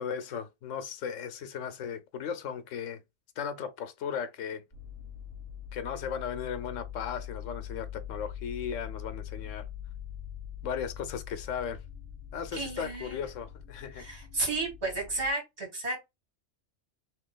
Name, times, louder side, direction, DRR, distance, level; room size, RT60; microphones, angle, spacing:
voice 1, 0.0-3.0 3.4-4.6 5.7-9.7 10.6-11.8 12.3-14.1, left 7 dB, 85° left, 1.1 m, -36 dB
sound 1, 4.7-15.3, left 9 dB, 20° left, 1.1 m, -43 dB
voice 2, 12.5-13.2 14.0-16.0, right 2 dB, 60° right, 2.2 m, -32 dB
3.0 x 3.0 x 3.7 m
omnidirectional pair, 1.3 m